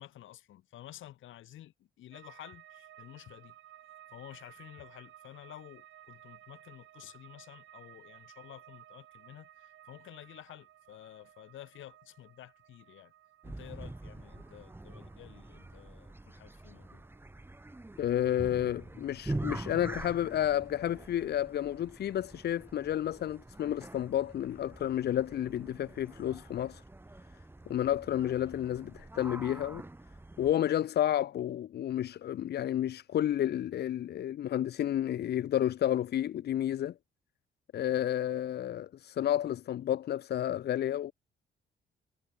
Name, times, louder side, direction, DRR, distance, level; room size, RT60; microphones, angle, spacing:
voice 1, 0.0-3.5 4.1-13.1 13.4-17.0, left 13 dB, 80° left, 2.9 m, -51 dB
sound 1, 2.1-19.2 19.5-20.2, right 12 dB, 75° right, 6.2 m, -57 dB
sound 2, 13.4-30.5, right 2 dB, 10° right, 1.5 m, -45 dB
voice 2, 18.0-26.8 27.7-29.8 30.4-36.9 37.7-41.1, left 11 dB, 55° left, 0.6 m, -31 dB
cardioid pair, 90°, 20 cm